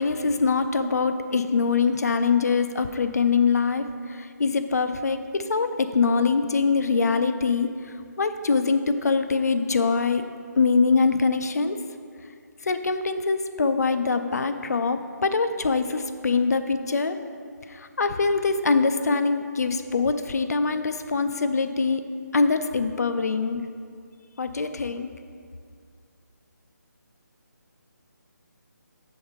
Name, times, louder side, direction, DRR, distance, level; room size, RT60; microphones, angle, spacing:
voice 1, 0.0-7.7 8.2-10.2 10.6-11.8 12.6-17.2 17.7-22.0 22.3-23.6 24.4-25.1, left 4 dB, 60° left, 9 dB, 0.4 m, -23 dB
7.6 x 3.5 x 5.4 m, 2.2 s
figure-of-eight pair, 150°, 10 cm